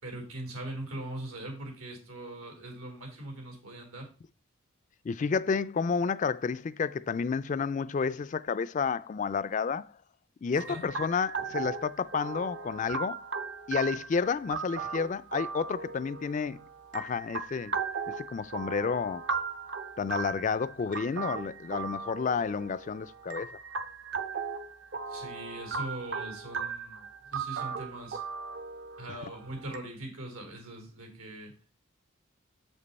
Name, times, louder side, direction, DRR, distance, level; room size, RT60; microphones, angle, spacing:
voice 1, 0.0-4.1 10.7-10.8 25.1-28.2 29.0-31.5, right 1 dB, 85° right, 3.0 m, -41 dB
voice 2, 5.0-9.9 10.4-13.2 13.7-16.6 16.9-17.7 18.2-19.2 20.0-23.5, left 5 dB, 35° left, 0.3 m, -30 dB
sound 1, 10.6-29.8, right 5 dB, 55° right, 0.7 m, -37 dB
7.5 x 5.3 x 4.1 m
head